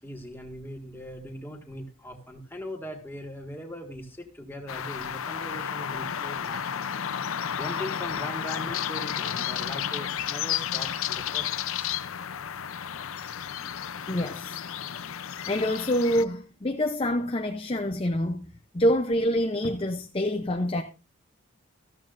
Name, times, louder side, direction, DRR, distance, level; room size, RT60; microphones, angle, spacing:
voice 1, 0.0-7.0 7.5-12.0, equal, 10° left, 1.8 m, -40 dB
sound 1, 4.7-16.2, left 9 dB, 75° left, 0.6 m, -32 dB
voice 2, 14.1-14.6 15.1-20.8, equal, 25° left, 0.6 m, -27 dB
13.5 x 13.5 x 2.6 m
head